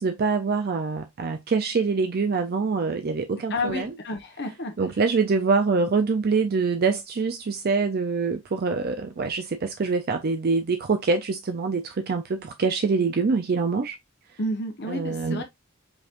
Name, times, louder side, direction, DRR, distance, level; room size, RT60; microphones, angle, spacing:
voice 1, 0.0-3.9 4.8-13.9 14.9-15.4, right 4 dB, 45° right, 0.4 m, -25 dB
voice 2, 3.5-4.7 14.4-15.4, left 1 dB, 50° left, 1.1 m, -30 dB
5.1 x 3.0 x 2.5 m
head